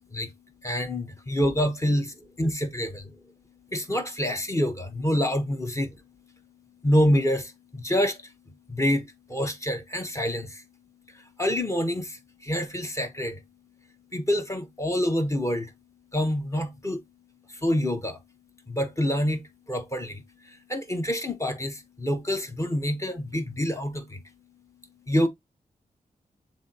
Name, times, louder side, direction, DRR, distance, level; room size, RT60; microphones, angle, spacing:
voice 1, 0.0-15.8 16.1-17.1 17.5-18.4 18.7-25.3, equal, 20° left, 1.0 m, -28 dB
7.0 x 2.6 x 2.8 m
wide cardioid pair, 80°, 16 cm